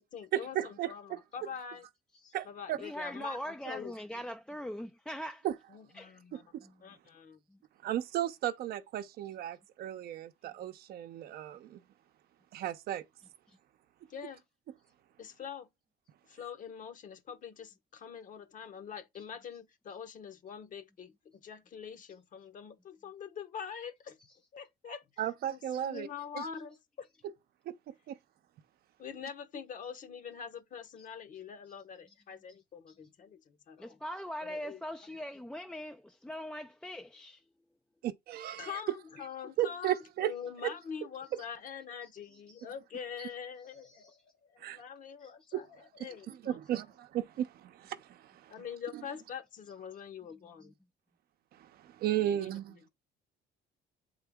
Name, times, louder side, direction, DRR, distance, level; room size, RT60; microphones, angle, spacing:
voice 1, 0.0-1.9 2.4-4.2 5.7-6.5 6.8-7.4 14.1-14.4 15.2-15.7 16.2-24.2 24.5-27.1 29.0-34.0 34.4-34.8 38.6-46.8 48.5-50.7 52.2-52.9, left 7 dB, 50° left, 1.0 m, -45 dB
voice 2, 0.5-1.2 2.3-2.8 5.4-5.5 6.3-6.4 7.8-11.8 12.5-13.0 25.2-26.1 27.7-27.8 28.1-28.2 38.0-38.7 39.6-40.3 44.6-44.8 45.5-45.6 46.5-48.5 51.6-52.6, right 12 dB, 65° right, 0.7 m, -35 dB
voice 3, 2.8-5.4 5.9-6.1 6.6-6.9 7.5-7.6 13.5-13.6 33.8-37.4 42.5-42.6 43.9-44.1, equal, 5° left, 0.3 m, -41 dB
8.0 x 3.8 x 3.6 m
cardioid pair, 110°, 17 cm